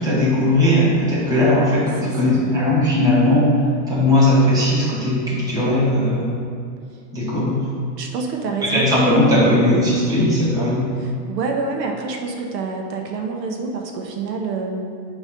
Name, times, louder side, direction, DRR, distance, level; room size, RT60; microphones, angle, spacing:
voice 1, 0.0-3.5 3.9-6.3 7.1-7.6 8.6-10.8, left 1 dB, 5° right, -8 dB, 1.1 m, -18 dB
voice 2, 2.0-2.4 6.9-7.0 8.0-8.9 11.0-15.2, right 4 dB, 80° right, 2 dB, 1.1 m, -27 dB
6.5 x 3.1 x 5.2 m, 2.4 s
supercardioid pair, 160°, 50 cm